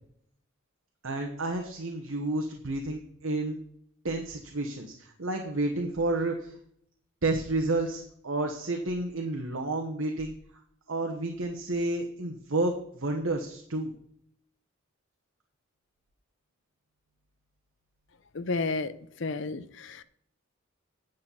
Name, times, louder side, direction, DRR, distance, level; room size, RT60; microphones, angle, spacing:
voice 1, 1.0-3.6 4.0-6.5 7.2-10.3 10.9-13.9, right 2 dB, 70° right, 2 dB, 1.2 m, -30 dB
voice 2, 18.3-20.0, left 3 dB, 60° left, 12 dB, 0.6 m, -32 dB
9.7 x 6.5 x 5.5 m, 0.68 s
head